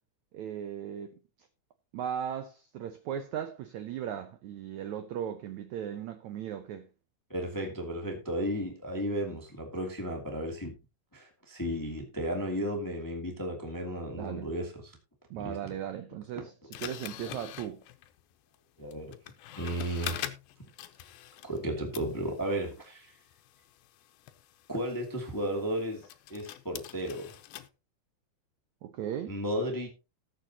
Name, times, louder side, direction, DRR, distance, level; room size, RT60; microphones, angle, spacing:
voice 1, 0.3-1.2 1.9-6.9 14.1-14.5 15.3-16.5 16.8-17.8 28.8-29.4, right 9 dB, 85° right, 1.6 m, -37 dB
voice 2, 7.3-10.7 11.1-15.0 15.4-15.7 16.3-16.5 18.8-19.1 19.6-20.2 21.4-23.1 24.7-26.0 26.3-27.3 29.3-29.9, equal, 10° left, 1.2 m, -34 dB
sound 1, 16.7-21.7 21.9-27.7, left 12 dB, 80° left, 2.5 m, -44 dB
19.5 x 6.8 x 2.9 m
omnidirectional pair, 4.4 m